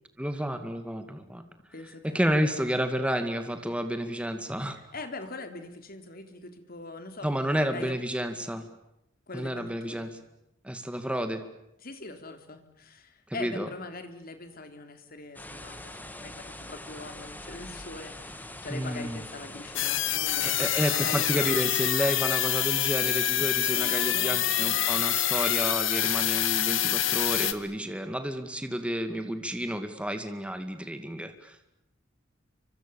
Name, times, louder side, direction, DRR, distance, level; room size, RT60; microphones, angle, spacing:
voice 1, 0.2-1.4 2.1-4.8 7.2-8.7 9.3-10.1 10.6-11.4 13.3-13.7 18.7-19.2 20.4-31.6, equal, 5° right, 7 dB, 2.2 m, -30 dB
voice 2, 1.7-2.2 4.7-8.0 9.3-10.1 11.8-21.5 23.7-25.0, left 3 dB, 50° left, 7 dB, 3.6 m, -42 dB
sound 1, 15.3-21.7, left 1 dB, 10° left, 2.4 m, -43 dB
sound 2, 19.7-27.5, left 12 dB, 90° left, 1.8 m, -26 dB
30.0 x 25.5 x 7.1 m, 0.84 s
head